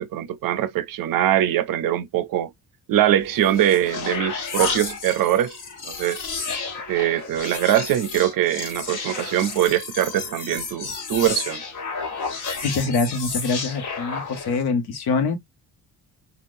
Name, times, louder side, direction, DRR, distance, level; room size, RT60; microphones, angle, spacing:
voice 1, 0.0-2.5 2.9-5.5 5.9-6.2 6.9-11.6, right 12 dB, 60° right, 0.5 m, -22 dB
sound 1, 3.2-14.7, left 4 dB, 50° left, 1.0 m, -32 dB
voice 2, 12.6-15.4, left 4 dB, 90° left, 1.0 m, -24 dB
3.5 x 2.4 x 2.5 m
cardioid pair, 170°, 38 cm